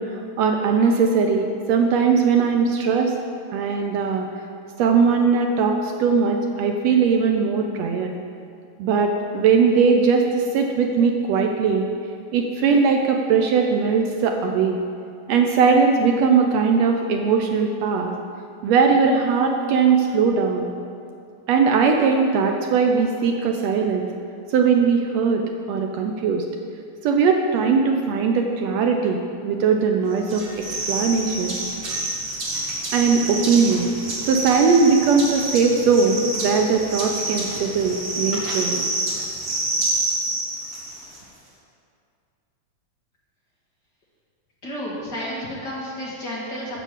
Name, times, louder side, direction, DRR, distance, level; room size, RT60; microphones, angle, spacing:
voice 1, 0.0-3.1 3.5-4.3 4.8-8.1 8.8-11.9 12.3-14.8 15.3-18.1 18.6-20.7 21.5-24.1 24.5-25.4 25.7-26.4 27.0-31.5 32.9-33.9 34.2-38.8, right 5 dB, 75° right, 3 dB, 1.7 m, -20 dB
sound 1, 30.3-41.2, right 2 dB, 50° right, 2.7 m, -28 dB
voice 2, 44.6-46.8, equal, 40° left, -6 dB, 1.8 m, -31 dB
8.2 x 6.9 x 7.4 m, 2.4 s
omnidirectional pair, 3.3 m